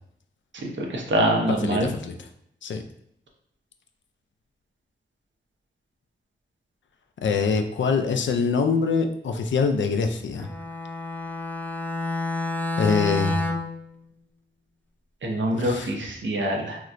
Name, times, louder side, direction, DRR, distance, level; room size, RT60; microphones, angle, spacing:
voice 1, 0.6-1.9 15.2-16.8, right 1 dB, 80° right, 1 dB, 0.6 m, -25 dB
voice 2, 1.6-2.2 2.6-2.8 7.2-10.5 12.8-13.4 15.5-15.9, left 5 dB, 80° left, 6 dB, 0.4 m, -24 dB
Bowed string instrument, 10.4-13.8, left 2 dB, 10° left, 0.3 m, -29 dB
3.1 x 2.8 x 2.4 m, 0.72 s
wide cardioid pair, 65°, 19 cm